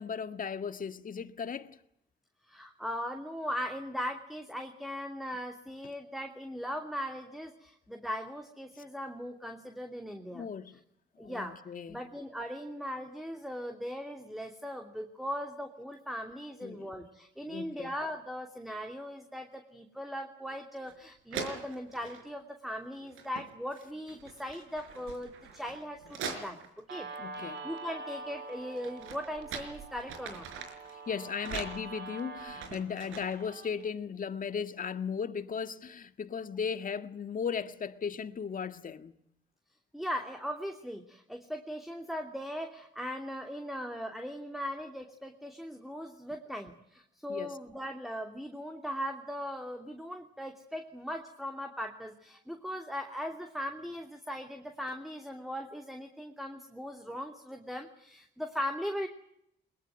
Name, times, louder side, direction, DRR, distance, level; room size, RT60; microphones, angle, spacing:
voice 1, 0.0-1.8 10.3-10.7 11.2-12.0 16.6-16.9 17.5-18.0 27.2-27.7 31.1-39.2 47.3-47.5, left 6 dB, 45° left, 1.8 m, -36 dB
voice 2, 2.5-10.5 11.2-11.6 11.9-27.1 27.4-30.5 39.9-59.1, equal, ahead, 2.8 m, -39 dB
sound 1, 20.9-21.0 21.3-22.3 23.0-23.5 23.8-27.0 28.5-30.9 31.4-33.5, right 5 dB, 90° right, 5.0 m, -43 dB
Guitar, 26.9-33.9, right 3 dB, 65° right, 3.7 m, -45 dB
22.5 x 21.5 x 9.1 m
cardioid pair, 90°, 20 cm